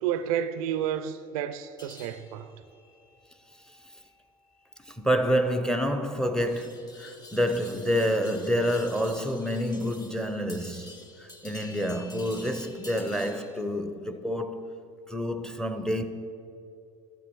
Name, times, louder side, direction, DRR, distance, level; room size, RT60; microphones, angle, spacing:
voice 1, 0.0-2.5, right 9 dB, 85° right, 0.4 m, -30 dB
sound 1, 1.8-13.6, left 2 dB, 20° left, 1.4 m, -50 dB
voice 2, 4.9-14.7 15.1-16.0, equal, 5° left, 0.7 m, -28 dB
12.5 x 8.0 x 4.6 m
supercardioid pair, 95°, 18 cm